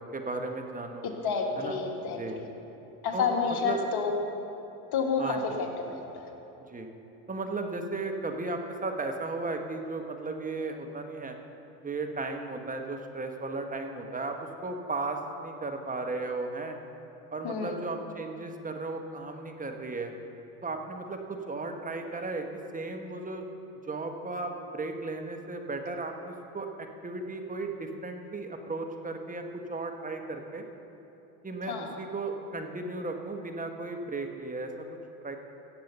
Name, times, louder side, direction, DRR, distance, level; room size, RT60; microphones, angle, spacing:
voice 1, 0.1-1.1 1.6-1.8 2.1-2.4 3.1-3.8 5.2-5.5 6.7-6.9 7.3-11.4 11.8-14.4 14.6-16.8 17.3-20.1 20.6-22.5 22.7-23.4 23.8-29.4 29.7-30.6 31.4-34.7 35.2-35.4, right 3 dB, 15° right, 4 dB, 1.3 m, -35 dB
voice 2, 1.2-2.5 3.0-4.1 4.9-6.3 17.4-17.8 31.7-31.9, left 5 dB, 50° left, 2 dB, 2.0 m, -30 dB
16.0 x 7.7 x 5.5 m, 3.0 s
hypercardioid pair, 90°, 46 cm